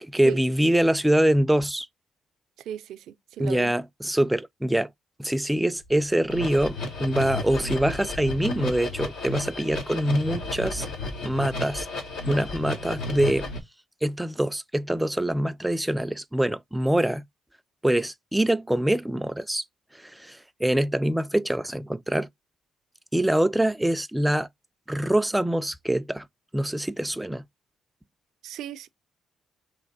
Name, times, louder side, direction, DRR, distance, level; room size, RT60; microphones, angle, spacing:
voice 1, 0.0-1.9 3.4-4.9 5.2-10.9 11.2-11.9 12.3-13.5 14.0-17.2 17.8-19.6 20.0-22.3 23.1-24.5 24.9-26.2 26.5-27.4, right 1 dB, 5° right, 0.3 m, -24 dB
voice 2, 2.6-3.7 28.4-28.9, right 10 dB, 80° right, 0.4 m, -36 dB
sound 1, 5.9-6.0 6.3-13.6, left 2 dB, 85° left, 1.0 m, -33 dB
3.2 x 2.9 x 3.8 m
cardioid pair, 90°, 0 cm